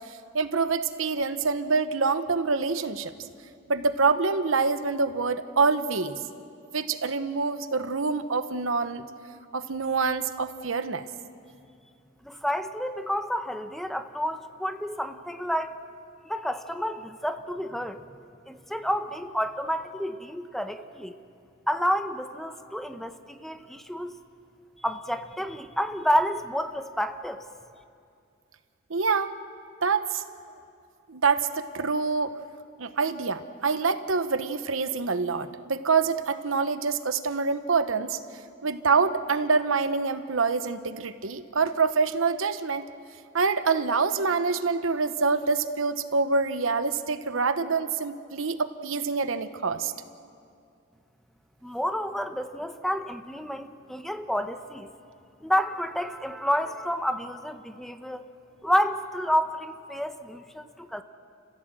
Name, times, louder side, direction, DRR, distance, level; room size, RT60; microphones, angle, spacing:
voice 1, 0.0-3.1 3.7-6.2 6.7-9.0 9.5-11.0 28.9-29.3 29.8-30.2 31.1-32.3 32.8-38.2 38.6-42.8 43.3-49.9, right 4 dB, 80° right, 10 dB, 1.0 m, -26 dB
voice 2, 12.2-15.8 16.2-18.0 18.5-21.2 21.7-24.2 24.8-27.4 51.6-54.9 55.4-58.3 58.6-61.0, equal, ahead, 8 dB, 0.8 m, -29 dB
30.0 x 15.5 x 7.7 m, 2.4 s
head